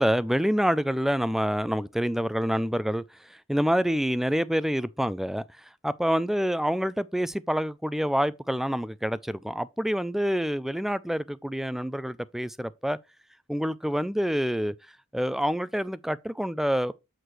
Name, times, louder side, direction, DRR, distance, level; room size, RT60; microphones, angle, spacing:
voice 1, 0.0-3.0 3.3-13.0 13.5-14.7 15.1-16.9, equal, ahead, 0.3 m, -27 dB
8.0 x 3.2 x 4.5 m
head